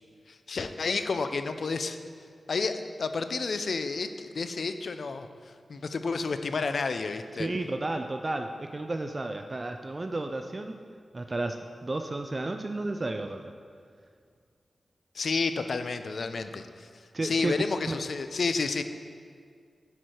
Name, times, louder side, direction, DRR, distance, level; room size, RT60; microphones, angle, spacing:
voice 1, 0.3-2.0 2.5-5.3 5.7-7.5 15.1-16.9 17.2-18.8, left 4 dB, 65° left, 9 dB, 0.4 m, -30 dB
voice 2, 7.4-10.8 11.1-13.5 17.1-17.6 17.9-18.0, right 2 dB, 30° right, 5 dB, 0.3 m, -32 dB
9.9 x 4.6 x 4.4 m, 2.2 s
wide cardioid pair, 115°, 0 cm